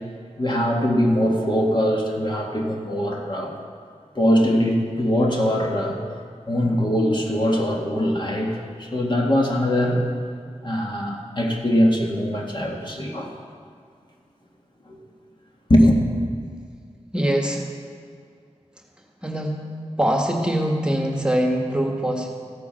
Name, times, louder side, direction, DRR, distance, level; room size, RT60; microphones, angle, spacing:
voice 1, 0.4-3.5 4.2-6.0 6.5-10.1 10.6-13.3 14.9-15.0 15.7-16.0, equal, 40° left, 0 dB, 1.9 m, -21 dB
voice 2, 17.1-17.7 19.2-19.6 20.0-22.3, right 1 dB, 10° right, 1 dB, 1.6 m, -23 dB
15.0 x 8.4 x 5.7 m, 2.1 s
wide cardioid pair, 60°, 12 cm